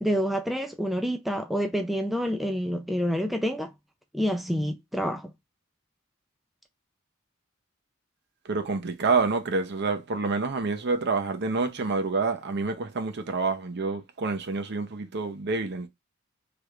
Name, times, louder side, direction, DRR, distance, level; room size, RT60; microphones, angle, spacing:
voice 1, 0.0-3.7 4.1-5.3, equal, ahead, 0.4 m, -28 dB
voice 2, 8.4-15.9, right 4 dB, 55° right, 0.7 m, -28 dB
3.4 x 2.4 x 3.1 m
head